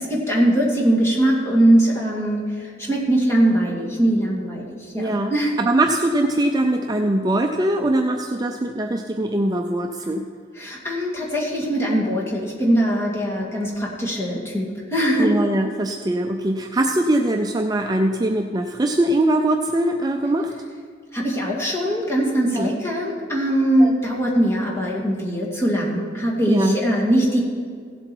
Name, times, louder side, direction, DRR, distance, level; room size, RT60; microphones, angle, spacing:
voice 1, 0.0-5.5 10.5-15.3 21.1-27.4, right 1 dB, 15° left, -4 dB, 2.3 m, -21 dB
voice 2, 5.0-5.3 5.6-10.2 15.2-20.5 22.5-22.7 23.8-23.9 26.5-26.7, right 1 dB, 20° right, 4 dB, 0.4 m, -21 dB
16.0 x 7.7 x 4.6 m, 2.1 s
head